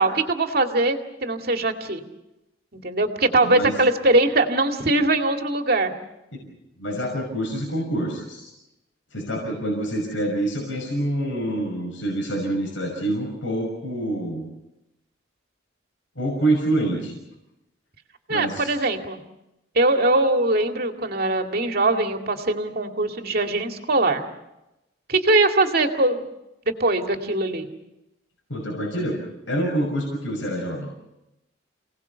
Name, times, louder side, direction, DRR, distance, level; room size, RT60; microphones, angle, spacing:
voice 1, 0.0-2.0 2.7-5.9 18.3-19.2 19.7-24.3 25.1-26.2 26.8-27.7, right 2 dB, 55° right, 4 dB, 2.2 m, -21 dB
voice 2, 3.4-3.8 6.3-6.5 6.8-8.5 9.1-14.5 16.2-17.1 18.3-18.7 28.5-29.2 29.5-30.9, right 1 dB, 85° left, 0 dB, 5.9 m, -26 dB
28.5 x 18.5 x 7.0 m, 0.94 s
head